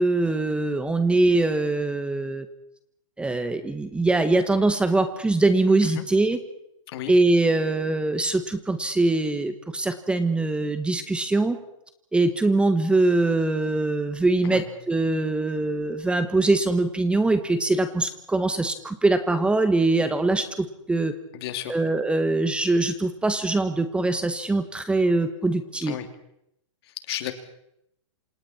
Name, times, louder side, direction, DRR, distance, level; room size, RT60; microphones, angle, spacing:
voice 1, 0.0-2.4 3.2-6.4 7.1-11.6 12.1-21.1 21.7-25.9, right 2 dB, 5° right, 9 dB, 1.5 m, -23 dB
voice 2, 21.3-21.8 25.9-26.1 26.8-27.3, left 13 dB, 50° left, 7 dB, 3.1 m, -33 dB
28.0 x 27.5 x 4.5 m, 0.79 s
hypercardioid pair, 140°, 16 cm